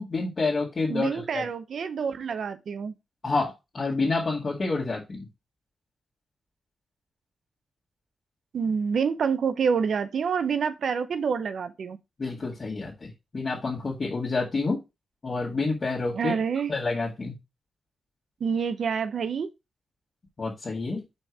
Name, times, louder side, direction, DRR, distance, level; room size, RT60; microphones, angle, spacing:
voice 1, 0.0-1.5 3.2-5.3 12.2-14.8 15.2-16.3 16.7-17.3 20.4-21.0, left 3 dB, 45° left, 2.1 m, -28 dB
voice 2, 0.9-2.9 8.5-12.0 16.1-16.7 18.4-19.5, right 6 dB, 70° right, 0.8 m, -27 dB
5.6 x 4.3 x 4.6 m
cardioid pair, 60°, 0 cm